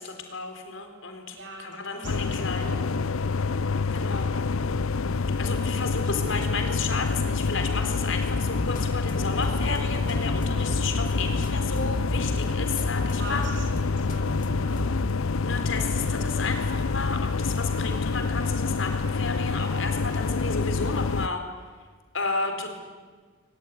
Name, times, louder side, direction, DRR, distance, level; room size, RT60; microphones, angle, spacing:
voice 1, 0.0-2.8 3.9-4.3 5.4-13.4 15.4-21.4 22.1-22.7, left 4 dB, 70° left, 5 dB, 4.2 m, -32 dB
voice 2, 1.3-2.8 13.0-14.9, right 2 dB, 60° right, 2 dB, 6.9 m, -43 dB
sound 1, 2.0-21.3, left 4 dB, 90° left, 0.6 m, -27 dB
sound 2, 8.3-15.1, left 1 dB, 40° left, 2.0 m, -34 dB
22.5 x 20.0 x 9.8 m, 1.5 s
head